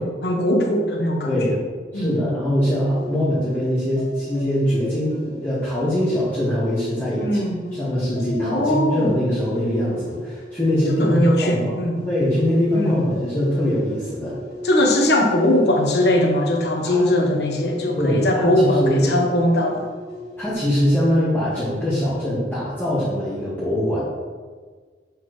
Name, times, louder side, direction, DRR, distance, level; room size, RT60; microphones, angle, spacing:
voice 1, 0.0-1.4 1.9-2.2 7.2-7.6 8.4-9.2 11.0-12.0 12.7-13.0 14.6-19.9, left 1 dB, 65° left, 1 dB, 1.1 m, -20 dB
voice 2, 1.3-1.6 1.9-11.7 12.0-14.4 16.8-17.1 18.0-19.0 20.4-24.0, equal, 10° left, -12 dB, 1.8 m, -22 dB
sound 1, 2.9-20.5, left 1 dB, 40° left, 2.1 m, -38 dB
7.4 x 6.6 x 3.2 m, 1.5 s
head